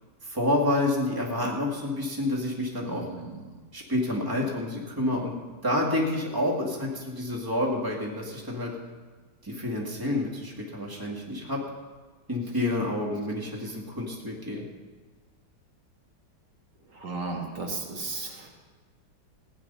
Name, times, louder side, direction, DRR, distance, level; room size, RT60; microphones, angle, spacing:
voice 1, 0.2-3.1 3.7-5.3 5.6-8.7 9.4-11.6 12.3-14.6, left 1 dB, 10° right, -2 dB, 2.0 m, -28 dB
voice 2, 2.8-3.6 16.9-18.5, right 3 dB, 70° right, 0 dB, 2.3 m, -35 dB
15.5 x 10.0 x 5.6 m, 1.4 s
omnidirectional pair, 2.0 m